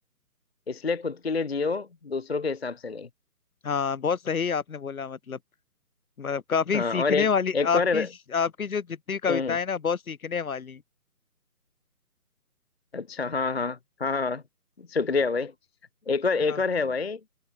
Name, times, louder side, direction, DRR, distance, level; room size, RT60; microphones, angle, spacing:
voice 1, 0.7-3.1 6.7-8.1 9.3-9.6 12.9-14.4 14.9-15.5 16.1-17.2, left 4 dB, 45° left, 0.6 m, -27 dB
voice 2, 3.6-5.4 6.2-10.8 16.5-16.6, left 6 dB, 60° left, 1.2 m, -28 dB
figure-of-eight pair, 160°, 47 cm